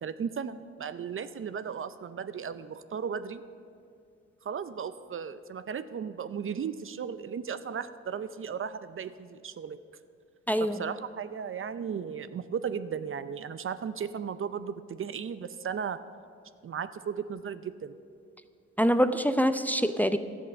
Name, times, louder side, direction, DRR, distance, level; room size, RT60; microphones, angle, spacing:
voice 1, 0.0-3.4 4.4-9.8 10.7-16.0 16.6-17.9, right 7 dB, 45° right, 13 dB, 0.6 m, -35 dB
voice 2, 10.5-10.8 18.8-20.2, equal, 5° left, 10 dB, 0.6 m, -24 dB
12.0 x 8.6 x 6.7 m, 2.4 s
supercardioid pair, 55°, 29 cm